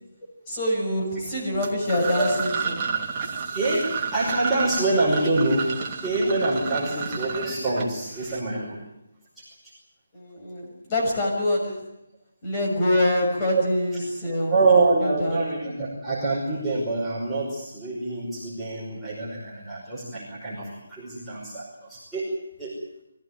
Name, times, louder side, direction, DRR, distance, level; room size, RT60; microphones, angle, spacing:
voice 1, 0.5-2.9 6.7-7.3 10.1-11.9 12.4-14.6 15.0-15.4, left 1 dB, 20° left, -2 dB, 6.6 m, -26 dB
sound 1, 1.5-8.4, right 6 dB, 20° right, 2.2 m, -31 dB
voice 2, 3.5-5.8 6.0-8.8 13.4-13.6 14.5-22.8, right 2 dB, ahead, -12 dB, 5.1 m, -25 dB
23.5 x 15.5 x 9.5 m, 0.88 s
hypercardioid pair, 170°, 0 cm